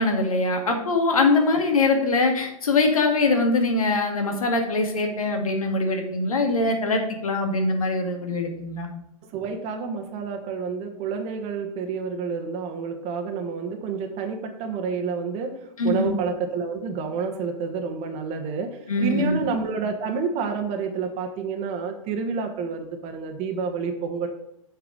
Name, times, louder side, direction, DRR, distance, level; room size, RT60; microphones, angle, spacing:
voice 1, 0.0-8.9 15.8-16.1 18.9-19.4, left 3 dB, 80° left, 3 dB, 1.9 m, -22 dB
voice 2, 9.2-24.3, right 5 dB, 35° right, 5 dB, 1.2 m, -29 dB
7.9 x 4.8 x 5.4 m, 0.77 s
hypercardioid pair, 110°, 18 cm